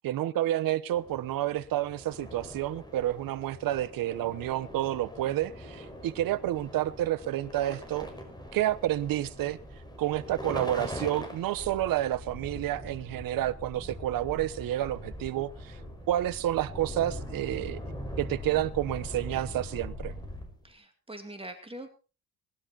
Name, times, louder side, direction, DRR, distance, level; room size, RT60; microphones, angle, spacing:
voice 1, 0.0-8.1 8.5-9.6 10.0-15.8 16.1-17.8 18.2-20.1, right 13 dB, 85° right, 1.1 m, -30 dB
sound 1, 0.9-20.7, left 1 dB, 10° left, 5.5 m, -42 dB
voice 2, 20.6-21.9, right 1 dB, 15° right, 2.5 m, -43 dB
19.5 x 12.0 x 4.3 m
cardioid pair, 100°, 33 cm